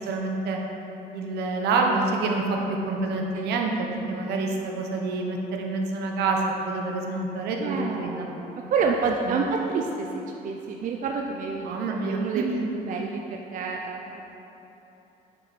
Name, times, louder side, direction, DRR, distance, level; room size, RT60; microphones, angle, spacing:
voice 1, 0.1-0.6 1.1-8.3 9.3-9.4 11.6-12.7, right 3 dB, 80° right, 1 dB, 1.1 m, -27 dB
voice 2, 7.6-8.4 8.7-10.1 10.4-11.8 12.0-12.6 12.9-14.2, right 5 dB, 50° right, 1 dB, 0.6 m, -28 dB
9.3 x 5.4 x 4.3 m, 3.0 s
cardioid pair, 110°, 17 cm